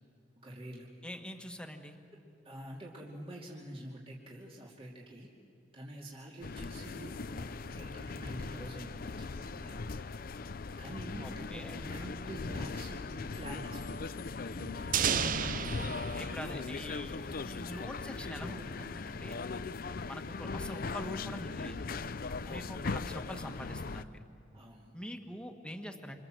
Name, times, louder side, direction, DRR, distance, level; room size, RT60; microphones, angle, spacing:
voice 1, 0.4-0.9 2.4-5.3 5.7-10.1 10.8-14.1 14.5-14.9 18.4-18.7 22.4-23.0 24.5-24.9, right 1 dB, 30° right, -3 dB, 2.7 m, -47 dB
voice 2, 1.0-2.0 11.2-11.8 16.1-19.4 20.1-21.8 22.5-24.2 24.9-26.2, equal, 5° left, 4 dB, 1.8 m, -44 dB
sound 1, 6.4-24.0, left 4 dB, 50° left, 0.6 m, -39 dB
sound 2, 14.9-17.7, right 8 dB, 50° right, 0.6 m, -34 dB
27.0 x 27.0 x 7.7 m, 2.5 s
head